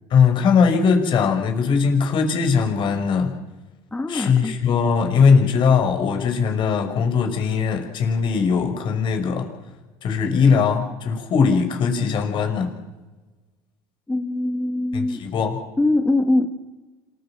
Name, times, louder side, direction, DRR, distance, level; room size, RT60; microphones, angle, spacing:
voice 1, 0.1-3.3 4.1-9.5 10.0-12.7 14.9-15.6, left 5 dB, 55° left, 4 dB, 5.8 m, -20 dB
voice 2, 3.9-4.6 14.1-15.2 15.8-16.5, left 2 dB, 15° left, 5 dB, 2.0 m, -22 dB
26.5 x 15.5 x 7.6 m, 1.2 s
supercardioid pair, 90°, 10 cm